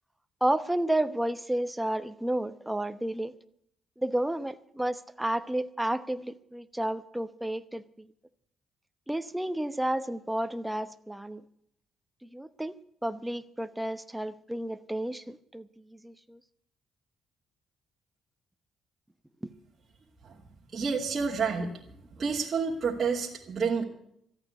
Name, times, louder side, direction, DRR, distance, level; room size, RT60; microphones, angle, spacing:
voice 1, 0.4-3.3 4.0-8.1 9.1-11.4 12.2-12.7 13.0-16.4, right 1 dB, 5° right, 12 dB, 1.0 m, -31 dB
voice 2, 20.7-21.7 22.1-23.8, right 5 dB, 45° right, -3 dB, 2.5 m, -29 dB
14.0 x 8.9 x 9.6 m, 0.70 s
cardioid pair, 90°, 0 cm